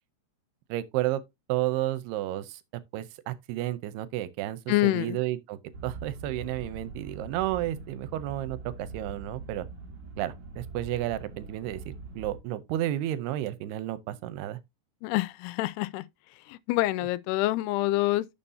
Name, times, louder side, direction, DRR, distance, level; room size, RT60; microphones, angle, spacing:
voice 1, 0.7-1.2 1.5-2.6 2.9-9.7 10.2-14.6, right 14 dB, 85° right, 2.7 m, -32 dB
voice 2, 4.7-5.2 15.0-16.1 16.5-18.3, left 18 dB, 80° left, 2.5 m, -26 dB
sound 1, 5.7-12.4, right 3 dB, 55° right, 1.7 m, -42 dB
11.0 x 6.9 x 2.7 m
omnidirectional pair, 4.7 m